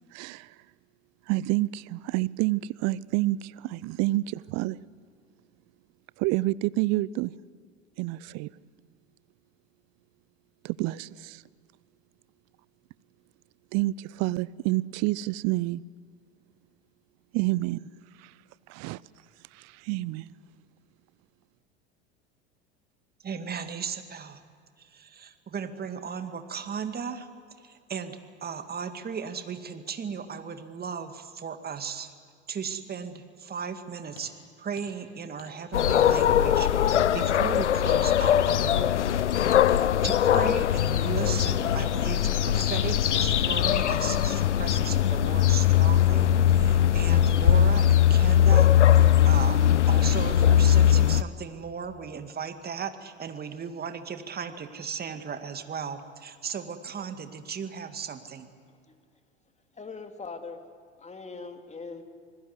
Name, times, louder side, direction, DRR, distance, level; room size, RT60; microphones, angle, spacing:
voice 1, 0.1-0.6 1.3-4.8 6.2-7.3 8.0-8.5 10.6-11.4 13.7-15.8 17.3-17.9 18.2-18.3 18.7-19.0 19.5-20.3, right 18 dB, 50° right, 22 dB, 0.7 m, -28 dB
voice 2, 23.2-24.4 24.8-27.3 27.6-32.1 32.5-34.3 34.6-39.1 39.5-58.5, right 6 dB, 25° right, 8 dB, 2.1 m, -36 dB
sound 1, 34.2-34.3 34.8-34.9 35.4-35.5 36.0-36.1 36.6-36.7 37.3-37.4 37.9-38.0 38.5-38.6 39.1-39.2 39.7-39.8 40.3-40.4 41.0-41.1 41.6-41.7 42.2-42.4 42.9-43.0 43.5-43.7, left 5 dB, 65° left, 6.4 m, -49 dB
sound 2, 35.7-51.2, left 10 dB, 85° left, 0.7 m, -21 dB
voice 3, 59.7-60.6 61.0-62.0, left 4 dB, 20° left, 6 dB, 2.5 m, -40 dB
26.5 x 20.0 x 8.1 m, 2.1 s
hypercardioid pair, 75°, 34 cm